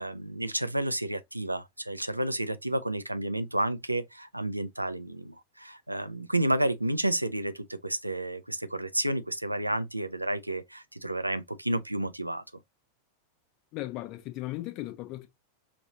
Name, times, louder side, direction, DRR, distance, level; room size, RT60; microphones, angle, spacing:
voice 1, 0.0-12.4, right 1 dB, 85° right, 0.4 m, -31 dB
voice 2, 13.7-15.3, left 17 dB, 40° left, 0.8 m, -37 dB
5.2 x 2.6 x 2.8 m
figure-of-eight pair, 90°, 0 cm